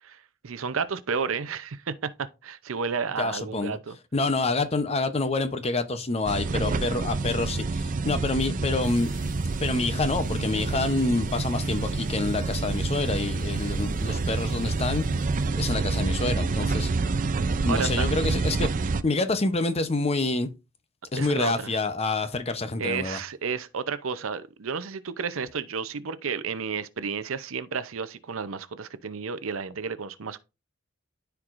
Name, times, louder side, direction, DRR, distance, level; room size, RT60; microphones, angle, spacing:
voice 1, 0.0-4.0 6.4-6.9 17.7-18.1 21.2-21.7 22.8-30.4, right 5 dB, 80° right, 0.6 m, -32 dB
voice 2, 3.2-3.8 4.1-9.1 9.6-15.0 15.6-16.9 17.7-18.7 19.0-20.5 21.1-23.2, left 3 dB, 30° left, 0.8 m, -27 dB
sound 1, 6.3-19.0, right 3 dB, 40° right, 0.5 m, -28 dB
sound 2, 8.8-15.5, left 2 dB, 85° left, 2.2 m, -52 dB
13.0 x 4.6 x 2.5 m
head